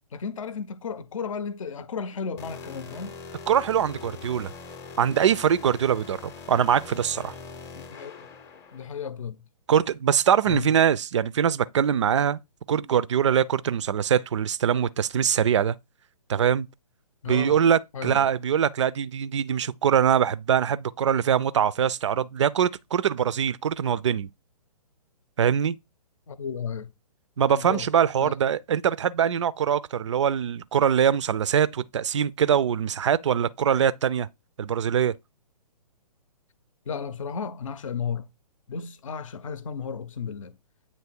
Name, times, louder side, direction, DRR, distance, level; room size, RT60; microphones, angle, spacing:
voice 1, 0.1-3.1 7.7-8.3 8.7-9.4 10.5-10.7 17.2-17.6 17.9-18.3 26.3-26.9 27.5-27.9 28.2-28.3 36.9-38.3 38.7-40.5, left 6 dB, 55° left, 0.7 m, -34 dB
sound 1, 2.4-8.9, left 5 dB, 15° left, 0.7 m, -42 dB
voice 2, 3.5-4.5 5.0-7.3 9.7-12.4 12.7-15.7 16.3-16.7 17.3-24.3 25.4-25.7 27.4-34.3 34.6-35.1, right 8 dB, 50° right, 0.4 m, -23 dB
8.3 x 3.1 x 4.4 m
figure-of-eight pair, 130°, 20 cm